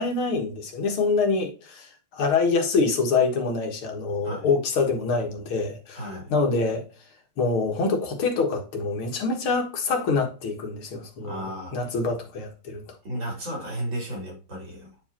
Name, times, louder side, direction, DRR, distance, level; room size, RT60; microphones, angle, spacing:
voice 1, 0.0-6.8 7.4-12.8, left 4 dB, 75° left, 2.3 m, -25 dB
voice 2, 6.0-6.3 11.2-11.9 13.0-14.9, equal, 60° right, 3.9 m, -34 dB
9.2 x 4.8 x 2.9 m
omnidirectional pair, 2.3 m